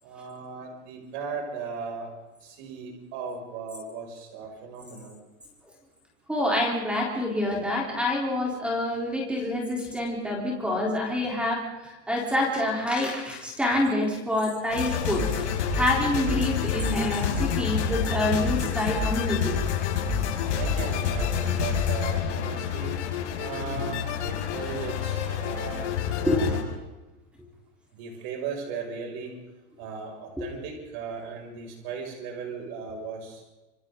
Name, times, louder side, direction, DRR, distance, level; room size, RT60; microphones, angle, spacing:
voice 1, 0.0-2.1 2.4-5.2 20.5-23.0 23.4-26.6 27.9-29.3 29.8-33.4, right 5 dB, 45° right, 1 dB, 6.5 m, -37 dB
voice 2, 6.3-15.4 15.7-19.6 26.3-26.4 30.4-30.5, left 1 dB, 5° right, -1 dB, 3.8 m, -27 dB
sound 1, 14.7-26.6, left 7 dB, 80° left, 6.3 m, -28 dB
27.5 x 26.5 x 4.0 m, 1.1 s
supercardioid pair, 175°, 34 cm